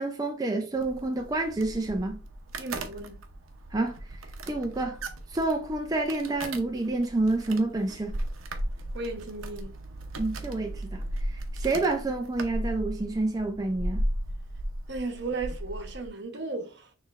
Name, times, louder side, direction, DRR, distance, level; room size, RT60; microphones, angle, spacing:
voice 1, 0.0-2.2 3.7-4.2 4.5-5.0 5.3-8.1 10.2-14.1, right 2 dB, 20° right, 0.5 m, -29 dB
sound 1, 0.8-16.1, right 1 dB, 90° right, 0.7 m, -36 dB
voice 2, 2.6-3.2 8.9-9.7 14.9-16.9, right 3 dB, 60° right, 0.9 m, -35 dB
6.4 x 3.3 x 2.4 m
head